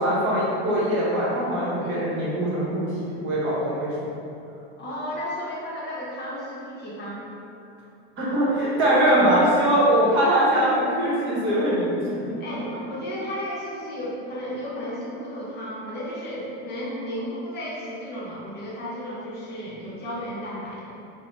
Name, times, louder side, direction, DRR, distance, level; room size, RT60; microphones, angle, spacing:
voice 1, 0.0-2.9 3.2-3.9 8.2-12.1 12.7-12.8, right 1 dB, 40° right, -6 dB, 0.9 m, -22 dB
voice 2, 1.8-2.1 4.8-7.3 12.4-21.0, equal, 35° left, -6 dB, 0.7 m, -33 dB
2.8 x 2.0 x 3.1 m, 2.7 s
supercardioid pair, 115°, 31 cm